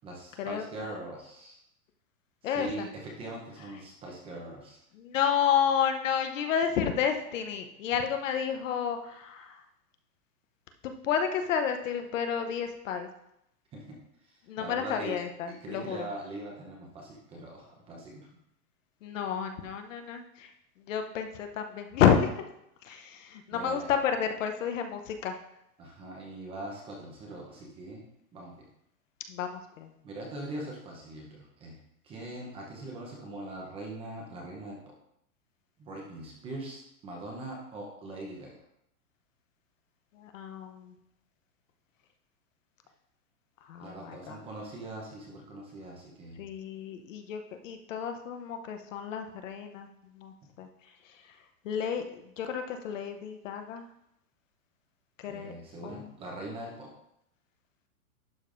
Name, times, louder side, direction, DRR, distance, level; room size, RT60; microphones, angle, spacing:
voice 1, 0.0-1.6 2.4-4.8 13.7-14.0 14.2-15.2 15.5-18.3 23.5-23.9 25.8-28.0 28.3-28.7 30.0-31.8 32.0-34.8 35.8-38.6 43.8-46.5 55.2-56.9, right 2 dB, 10° right, -1 dB, 0.7 m, -41 dB
voice 2, 2.4-2.9 5.0-9.6 10.8-13.1 14.5-16.1 19.0-20.5 20.9-22.3 22.8-25.4 29.3-29.9 40.1-40.9 43.7-44.4 46.4-49.9 50.1-50.7 51.6-53.8 55.2-55.5 55.8-56.1, left 8 dB, 55° left, 6 dB, 0.8 m, -30 dB
11.5 x 5.1 x 2.5 m, 0.79 s
supercardioid pair, 160°, 45 cm